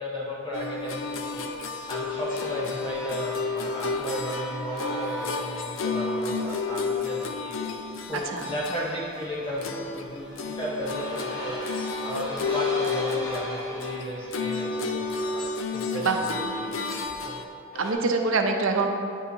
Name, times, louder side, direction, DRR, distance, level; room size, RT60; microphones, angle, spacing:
voice 1, 0.0-1.4 1.9-7.6 8.1-11.6 12.0-17.4, equal, 25° left, -5 dB, 0.7 m, -34 dB
sound 1, 0.5-10.1 10.4-17.4, left 4 dB, 75° left, 0.5 m, -31 dB
sound 2, 1.3-7.9 9.4-17.0 17.7-17.9, equal, 55° left, 1.3 m, -40 dB
voice 2, 8.1-8.4 16.0-16.2 17.7-18.9, right 4 dB, 75° right, 4 dB, 0.6 m, -24 dB
9.6 x 5.4 x 2.7 m, 2.4 s
head